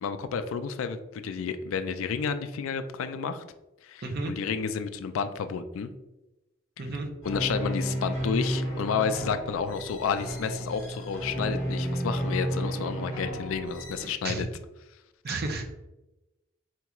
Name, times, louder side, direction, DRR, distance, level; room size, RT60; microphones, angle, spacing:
voice 1, 0.0-3.4 3.8-5.9 7.2-14.5, left 6 dB, 75° left, 10 dB, 0.3 m, -31 dB
voice 2, 4.0-4.3 6.8-7.1 14.0-14.5 15.2-15.6, right 3 dB, 50° right, 4 dB, 0.5 m, -32 dB
sound 1, 7.2-14.1, equal, 20° left, 1.3 m, -32 dB
4.3 x 2.9 x 2.3 m, 1.0 s
head